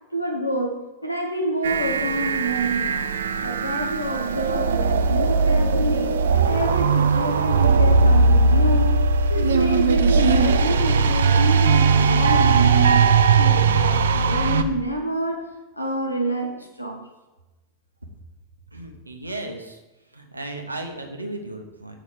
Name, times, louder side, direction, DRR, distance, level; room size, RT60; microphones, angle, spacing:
voice 1, 0.1-0.8 1.0-3.1 3.4-6.2 6.5-9.0 9.3-13.0 13.4-17.0, right 1 dB, 85° left, 2 dB, 1.3 m, -27 dB
sound 1, 1.6-14.6, right 4 dB, 65° right, 0.5 m, -19 dB
voice 2, 18.7-19.8 20.1-22.0, right 2 dB, 85° right, 4 dB, 1.0 m, -35 dB
6.9 x 6.2 x 4.9 m, 1.1 s
figure-of-eight pair, 90°, 0 cm